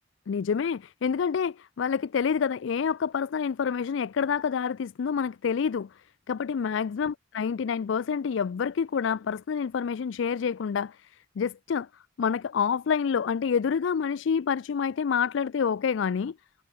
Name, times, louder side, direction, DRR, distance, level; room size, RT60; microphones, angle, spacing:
voice 1, 0.3-5.9 6.3-11.9 12.2-16.3, left 6 dB, 70° left, 0.4 m, -28 dB
head